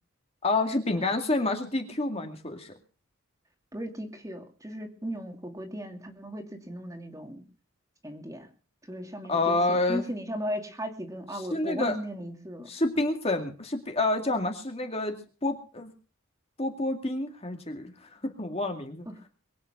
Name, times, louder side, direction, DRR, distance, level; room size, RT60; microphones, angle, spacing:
voice 1, 0.4-2.7 9.3-10.1 11.5-12.0 12.7-15.9 16.6-19.1, left 2 dB, 30° left, 5 dB, 2.2 m, -28 dB
voice 2, 3.7-7.4 8.0-8.5 8.8-12.7 19.1-19.2, equal, 15° right, 5 dB, 2.5 m, -37 dB
22.5 x 9.3 x 6.0 m, 0.38 s
head